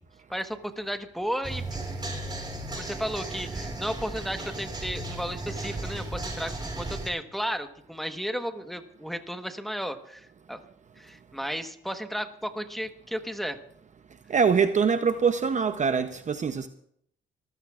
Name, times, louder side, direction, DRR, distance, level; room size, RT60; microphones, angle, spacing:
voice 1, 0.3-1.6 2.7-10.6 11.0-13.6, equal, ahead, 1.2 m, -34 dB
sound 1, 1.4-7.1, right 2 dB, 20° right, 3.4 m, -35 dB
voice 2, 14.3-16.7, right 6 dB, 35° right, 0.7 m, -24 dB
24.5 x 14.5 x 2.4 m
cardioid pair, 90°, 20 cm